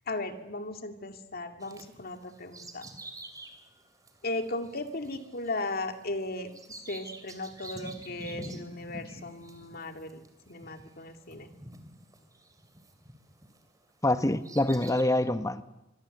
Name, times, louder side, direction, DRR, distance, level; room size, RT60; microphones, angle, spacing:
voice 1, 0.1-2.9 4.2-11.5, left 2 dB, 50° left, 2.3 m, -37 dB
Bird vocalization bird call bird song, 1.6-13.7 14.2-15.0, right 2 dB, 20° right, 2.8 m, -47 dB
voice 2, 14.0-15.6, left 1 dB, 15° left, 1.0 m, -25 dB
26.0 x 22.0 x 8.0 m
head